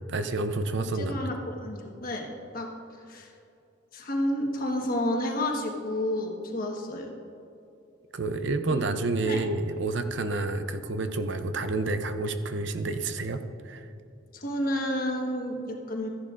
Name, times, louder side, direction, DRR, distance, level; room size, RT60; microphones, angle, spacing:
voice 1, 0.0-1.2 8.1-13.9, right 3 dB, 60° right, 9 dB, 0.5 m, -29 dB
voice 2, 0.8-2.3 2.5-2.7 3.1-3.3 3.9-7.1 8.7-8.9 9.2-9.4 14.3-16.1, left 1 dB, 45° left, 1 dB, 1.3 m, -30 dB
14.0 x 10.5 x 2.5 m, 2.7 s
head